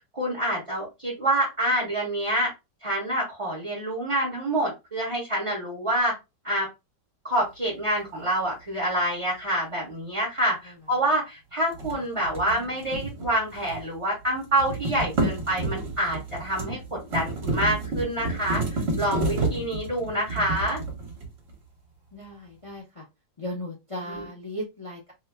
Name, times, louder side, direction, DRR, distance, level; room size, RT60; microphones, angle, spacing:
voice 1, 0.1-2.5 2.8-6.1 6.4-6.7 7.2-16.8 17.1-20.8 24.0-24.3, right 1 dB, 20° right, -6 dB, 1.0 m, -27 dB
sound 1, 11.7-14.0 14.2-21.5, right 2 dB, 40° right, 1.2 m, -30 dB
voice 2, 12.2-12.8 22.1-23.1 23.4-25.1, equal, 50° left, -2 dB, 0.4 m, -37 dB
2.9 x 2.2 x 3.3 m, 0.24 s
omnidirectional pair, 1.9 m